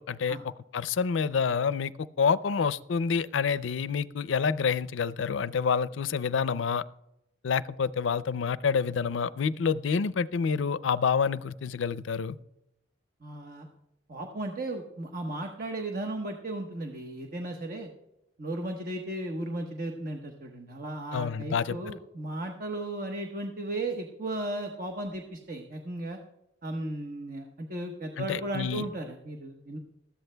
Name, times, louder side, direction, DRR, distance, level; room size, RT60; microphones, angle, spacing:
voice 1, 0.0-6.8 7.4-12.4 21.1-21.8 28.2-28.8, left 6 dB, 85° left, 16 dB, 0.4 m, -28 dB
voice 2, 13.2-13.7 14.1-17.9 18.4-26.2 26.6-29.8, right 1 dB, 50° right, 3 dB, 1.1 m, -35 dB
20.0 x 14.0 x 2.2 m, 0.88 s
head